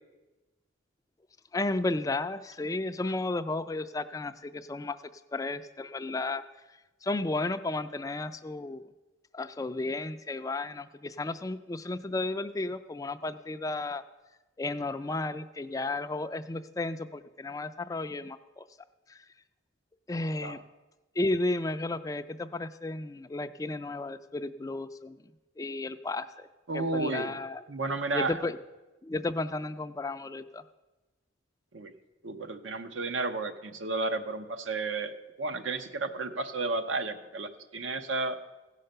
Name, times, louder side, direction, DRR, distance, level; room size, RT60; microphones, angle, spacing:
voice 1, 1.5-5.0 5.3-6.4 7.0-8.8 9.3-14.0 14.6-18.6 19.1-19.2 20.1-20.6 21.2-25.2 25.6-26.5 26.7-27.6 28.1-28.6 29.0-30.6, left 2 dB, 20° left, 10 dB, 0.3 m, -33 dB
voice 2, 26.7-27.3 27.7-28.4 31.7-31.9 32.2-38.4, right 3 dB, 80° right, 9 dB, 0.8 m, -32 dB
16.0 x 5.6 x 6.6 m, 1.1 s
head